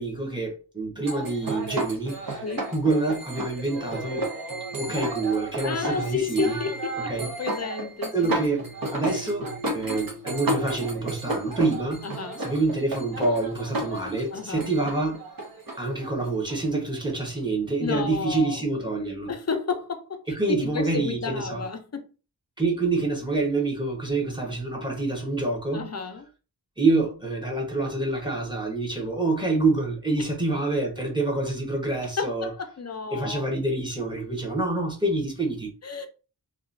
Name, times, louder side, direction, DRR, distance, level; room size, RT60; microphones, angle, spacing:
voice 1, 0.0-2.4 2.7-4.3 4.8-6.6 7.0-7.3 8.1-12.0 12.4-15.2 15.8-19.3 20.3-21.6 22.6-25.9 26.8-32.5 33.1-35.7, right 3 dB, 10° right, 1.1 m, -27 dB
sound 1, 1.0-17.4, right 1 dB, 55° right, 0.9 m, -33 dB
voice 2, 5.6-8.1 12.0-12.4 14.3-14.7 17.8-18.6 19.3-22.0 25.7-26.3 32.2-33.4 35.8-36.1, left 5 dB, 35° left, 0.5 m, -31 dB
2.9 x 2.4 x 2.5 m
wide cardioid pair, 70°, 43 cm